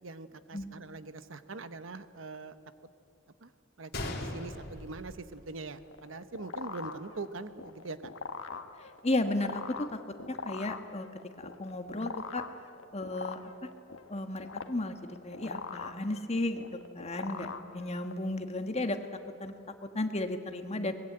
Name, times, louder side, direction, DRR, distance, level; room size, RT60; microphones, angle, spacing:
voice 1, 0.0-2.6 3.4-3.5 3.8-8.1, right 3 dB, 75° right, 12 dB, 1.0 m, -43 dB
Gunshot gunfire, 3.9-5.9 6.2-6.3 7.0-7.2, left 2 dB, 55° left, 3.0 m, -39 dB
sound 1, 5.9-18.3, left 4 dB, 80° left, 1.4 m, -42 dB
voice 2, 9.0-9.9 10.3-11.1 11.4-12.4 12.9-13.7 14.1-16.6 16.9-19.0 19.4-19.5 19.9-20.9, left 2 dB, 35° left, 7 dB, 1.5 m, -34 dB
23.0 x 20.5 x 8.9 m, 2.4 s
head